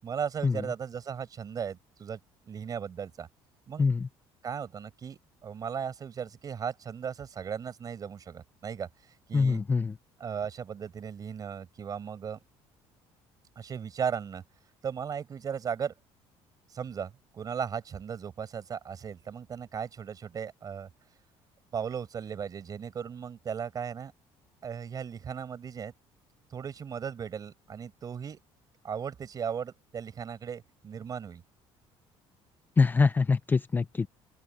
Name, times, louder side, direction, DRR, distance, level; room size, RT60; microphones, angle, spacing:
voice 1, 0.0-2.2 2.4-3.3 3.7-3.9 4.4-8.9 9.3-9.6 10.2-12.4 13.5-14.4 14.8-15.9 16.7-20.9 21.7-24.1 24.6-25.9 26.5-28.4 28.8-31.4, right 7 dB, 35° right, 5.1 m, -36 dB
voice 2, 9.3-9.9 32.8-34.1, left 4 dB, 15° left, 0.5 m, -24 dB
open air
cardioid pair, 135°, 11 cm